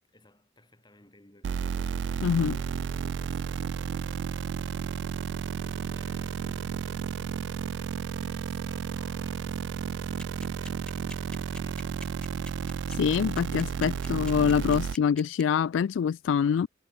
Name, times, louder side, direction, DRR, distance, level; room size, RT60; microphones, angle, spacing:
voice 1, 0.1-12.0, left 1 dB, 25° left, 7.9 m, -59 dB
sound 1, 1.4-15.0, right 6 dB, 65° right, 0.3 m, -32 dB
voice 2, 2.2-2.6 12.9-16.7, left 7 dB, 75° left, 0.3 m, -25 dB
sound 2, 10.2-15.4, left 1 dB, 5° left, 2.3 m, -44 dB
head